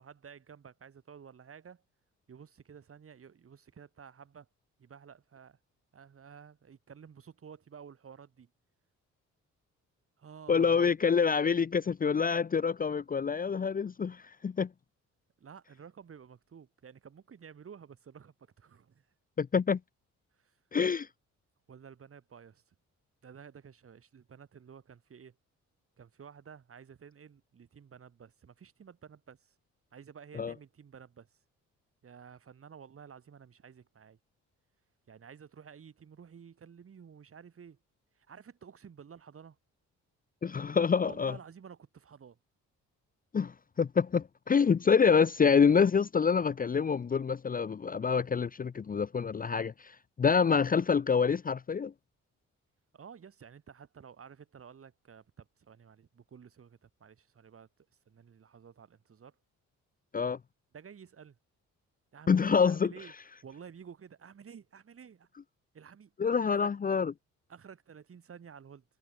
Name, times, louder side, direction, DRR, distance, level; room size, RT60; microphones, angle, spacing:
voice 1, 0.0-1.8 2.3-4.5 4.8-5.6 5.9-8.5 10.2-11.0 15.4-19.1 20.3-20.9 21.7-22.8 23.2-25.4 26.0-29.6 29.9-31.4 32.0-34.2 35.1-37.8 38.1-39.6 41.0-42.4 52.9-57.7 58.1-59.4 60.7-61.4 62.1-63.1 63.4-65.3 65.7-66.1 66.4-66.7 67.5-68.8, right 7 dB, 45° right, 7.0 m, -52 dB
voice 2, 10.5-14.7 19.4-19.8 20.7-21.1 30.3-30.5 40.4-41.3 43.3-51.9 60.1-60.4 62.3-62.9 66.2-67.1, left 6 dB, 30° left, 0.7 m, -27 dB
cardioid pair, 90°, 30 cm